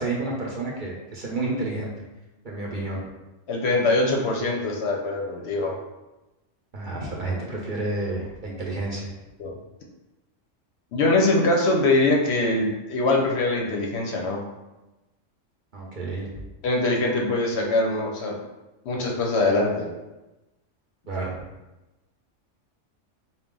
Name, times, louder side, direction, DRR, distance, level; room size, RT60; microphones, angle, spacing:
voice 1, 0.0-1.9 2.4-3.0 6.7-9.1 15.7-16.3 21.1-21.3, right 2 dB, 50° right, -3 dB, 0.7 m, -30 dB
voice 2, 3.5-5.8 9.4-9.5 10.9-14.4 16.6-18.4 18.9-19.9, left 2 dB, 65° left, 0 dB, 0.8 m, -23 dB
4.0 x 2.3 x 3.7 m, 1.0 s
omnidirectional pair, 1.3 m